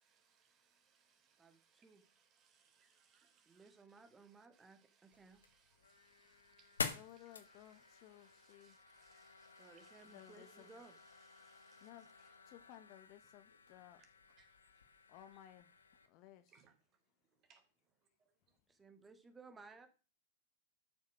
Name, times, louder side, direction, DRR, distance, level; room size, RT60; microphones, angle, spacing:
voice 1, 0.0-3.7 4.5-10.0 11.4-11.9 14.4-14.5 16.5-16.7 17.5-17.6, right 6 dB, 30° right, 3.7 m, -72 dB
voice 2, 1.4-2.1 3.5-5.4 9.6-10.9 18.7-19.9, right 4 dB, 15° right, 2.3 m, -60 dB
sound 1, 5.1-16.1, left 5 dB, 75° left, 1.5 m, -50 dB
voice 3, 6.8-8.8 10.0-10.7 11.8-14.0 15.1-15.7 16.1-16.6, left 12 dB, 45° left, 1.4 m, -59 dB
12.5 x 7.3 x 6.4 m
figure-of-eight pair, 100°, 0 cm